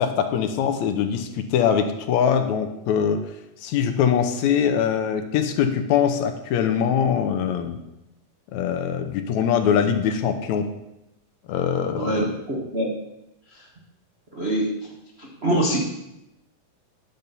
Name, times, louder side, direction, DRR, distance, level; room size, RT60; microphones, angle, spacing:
voice 1, 0.0-3.2 3.6-7.8 8.5-10.7 11.5-12.3, left 8 dB, 80° left, 8 dB, 1.9 m, -22 dB
voice 2, 11.9-12.9 13.5-13.7 14.3-14.7 15.2-15.8, right 1 dB, 75° right, -4 dB, 0.5 m, -25 dB
10.5 x 4.2 x 6.6 m, 0.88 s
omnidirectional pair, 3.5 m